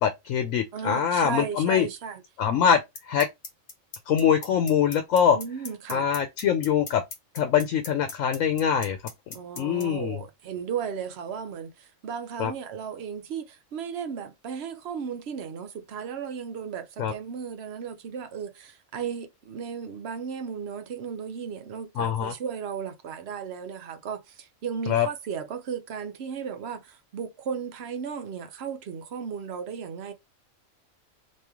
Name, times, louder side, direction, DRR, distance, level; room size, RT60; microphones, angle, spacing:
voice 1, 0.0-1.9 2.4-2.8 3.1-3.3 4.1-5.4 5.9-7.0 7.3-9.0 9.6-10.2 12.4-12.5 17.0-17.1 22.0-22.3 24.9-25.1, left 8 dB, 75° left, 0.9 m, -23 dB
voice 2, 0.7-2.2 5.3-6.1 9.3-30.1, right 7 dB, 60° right, 0.8 m, -35 dB
sound 1, 3.0-9.8, left 4 dB, 45° left, 0.9 m, -37 dB
2.9 x 2.7 x 3.6 m
omnidirectional pair, 1.4 m